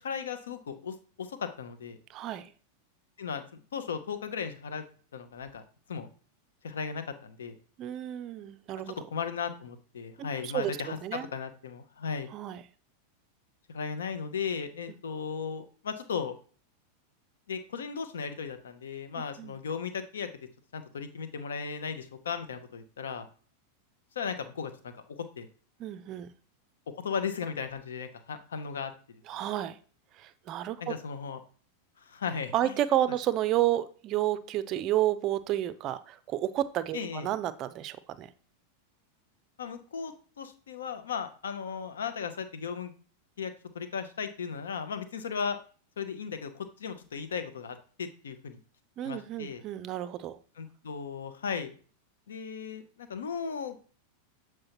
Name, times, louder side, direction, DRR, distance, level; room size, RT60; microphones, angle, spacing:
voice 1, 0.0-2.0 3.2-4.8 5.1-5.6 5.9-6.1 6.6-7.6 8.9-12.3 13.7-16.3 17.5-20.3 20.7-23.3 24.1-25.5 27.0-29.4 30.8-31.4 32.0-32.7 36.9-37.3 39.6-42.9 43.4-45.6 46.0-48.6 49.0-49.6 50.6-51.7 52.3-53.8, left 6 dB, 65° left, 9 dB, 0.8 m, -36 dB
voice 2, 2.1-2.5 7.8-8.9 10.2-10.7 11.0-11.3 12.3-12.6 19.4-19.5 25.8-26.3 29.3-29.8 30.2-30.9 32.5-38.3 49.0-50.4, right 13 dB, 35° right, 14 dB, 0.4 m, -31 dB
7.5 x 4.6 x 2.9 m, 0.40 s
figure-of-eight pair, 90°, 0 cm